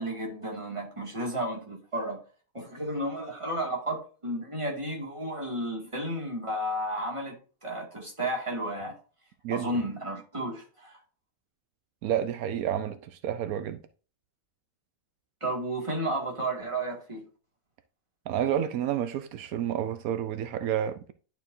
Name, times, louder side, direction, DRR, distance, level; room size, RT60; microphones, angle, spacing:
voice 1, 0.0-2.2 2.5-7.4 7.6-9.0 9.5-11.0 15.4-17.2, right 1 dB, 20° right, 2.2 m, -32 dB
voice 2, 12.0-13.8 18.3-21.1, right 10 dB, 80° right, 1.1 m, -30 dB
11.0 x 4.6 x 2.6 m
omnidirectional pair, 1.5 m